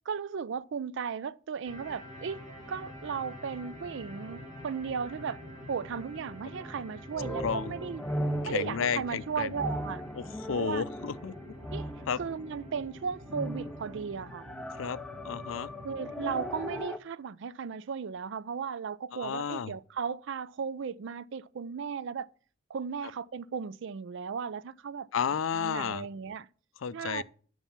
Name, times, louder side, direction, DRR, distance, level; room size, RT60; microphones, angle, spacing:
voice 1, 0.1-2.4 2.7-5.4 5.7-8.0 8.4-10.0 10.5-10.8 11.7-11.9 12.2-14.4 15.8-22.3 22.7-25.1 25.5-26.5 26.9-27.2, right 6 dB, 65° right, 0.4 m, -36 dB
sound 1, 1.6-16.8, left 1 dB, 40° right, 4.2 m, -47 dB
sound 2, 6.6-12.5 13.3-17.0, equal, 5° left, 0.5 m, -38 dB
voice 2, 7.4-7.7 8.4-9.5 10.2-11.3 12.1-12.2 14.8-15.0 15.2-15.7 19.1-19.7 25.1-26.1 26.8-27.2, left 7 dB, 80° left, 0.4 m, -32 dB
7.3 x 5.5 x 5.8 m
head